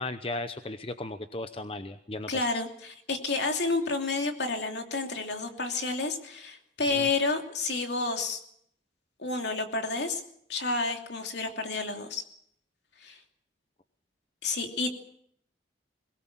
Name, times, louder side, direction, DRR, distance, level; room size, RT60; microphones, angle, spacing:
voice 1, 0.0-2.5 7.0-7.1, left 2 dB, 30° left, 9 dB, 0.8 m, -36 dB
voice 2, 2.3-8.4 9.2-10.2 10.5-12.2 13.0-13.2 14.4-14.9, left 3 dB, 65° left, 4 dB, 2.9 m, -30 dB
22.0 x 18.5 x 7.5 m, 0.71 s
head